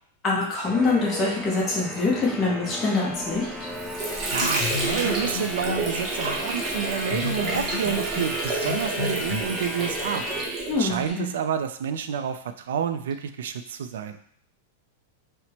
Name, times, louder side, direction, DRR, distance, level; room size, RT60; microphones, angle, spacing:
voice 1, 0.2-3.7 10.7-11.3, left 3 dB, 20° left, -5 dB, 0.7 m, -25 dB
sound 1, 0.6-10.4, equal, ahead, 0.4 m, -35 dB
Water / Sink (filling or washing), 3.4-11.1, right 2 dB, 20° right, 0.8 m, -30 dB
voice 2, 4.3-10.2 10.8-14.2, right 8 dB, 80° right, 9 dB, 0.3 m, -29 dB
sound 2, 4.4-5.9 7.1-9.4, left 7 dB, 70° left, 0.4 m, -33 dB
4.3 x 2.1 x 2.8 m, 0.63 s
supercardioid pair, 165°, 0 cm